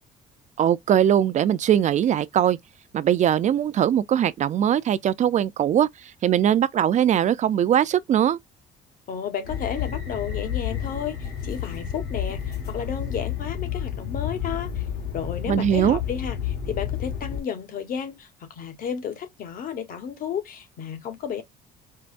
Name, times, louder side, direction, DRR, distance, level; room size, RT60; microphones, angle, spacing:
voice 1, 0.6-2.6 2.9-8.4 15.5-16.0, right 10 dB, 45° right, 0.4 m, -21 dB
voice 2, 9.1-14.9 15.1-21.4, left 7 dB, 55° left, 1.2 m, -32 dB
sound 1, 9.4-17.4, left 9 dB, 75° left, 1.5 m, -30 dB
4.6 x 2.0 x 2.5 m
cardioid pair, 110°, 17 cm